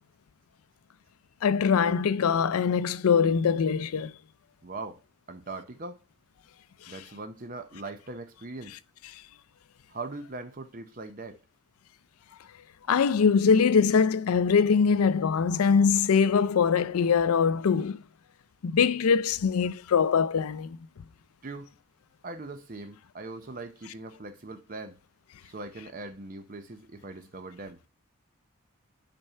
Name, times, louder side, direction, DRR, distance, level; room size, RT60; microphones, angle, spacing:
voice 1, 1.4-4.1 12.9-18.0 18.6-20.8, left 6 dB, 85° left, 0.4 m, -23 dB
voice 2, 4.6-5.0 5.3-6.0 6.9-8.7 9.9-11.4 21.4-21.7 22.2-25.0 25.4-27.8, right 3 dB, 40° right, 0.6 m, -40 dB
8.0 x 4.4 x 5.5 m
head